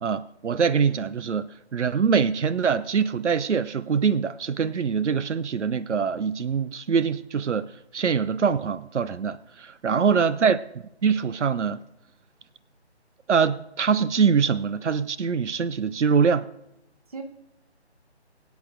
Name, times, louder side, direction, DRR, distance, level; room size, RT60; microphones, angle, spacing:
voice 1, 0.0-10.6 11.0-11.8 13.3-16.5, right 6 dB, 90° right, 0.6 m, -24 dB
voice 2, 9.9-10.4 17.1-17.2, right 4 dB, 35° right, 1.1 m, -39 dB
23.5 x 8.2 x 2.5 m
figure-of-eight pair, 160°, 34 cm